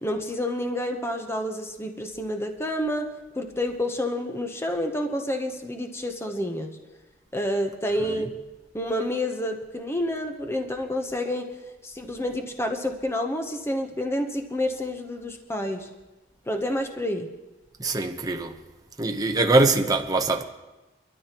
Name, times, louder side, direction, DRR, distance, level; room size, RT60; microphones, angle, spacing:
voice 1, 0.0-3.1 3.3-6.8 7.3-8.3 8.7-11.6 11.8-15.9 16.5-17.3, left 1 dB, 15° left, 0.8 m, -29 dB
voice 2, 17.8-18.6 19.0-20.4, right 2 dB, 20° right, 0.9 m, -23 dB
23.5 x 13.0 x 3.0 m
head